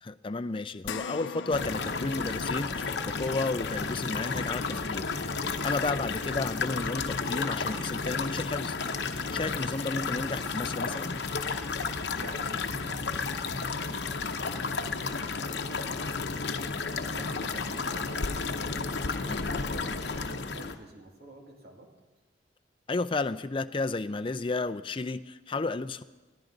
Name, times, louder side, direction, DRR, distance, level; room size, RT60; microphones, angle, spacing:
voice 1, 0.0-5.1 5.6-8.8 9.3-11.2 19.3-19.5 22.9-26.0, left 3 dB, 30° left, 10 dB, 0.5 m, -32 dB
sound 1, 0.8-9.5 9.9-10.0 11.5-11.6, left 5 dB, 90° left, 0.5 m, -45 dB
sound 2, 1.5-20.8, left 4 dB, 65° left, 0.9 m, -32 dB
voice 2, 11.9-16.4 17.1-18.5 19.1-21.9, right 1 dB, 55° right, 1 dB, 2.5 m, -49 dB
21.5 x 15.0 x 4.0 m, 1.2 s
head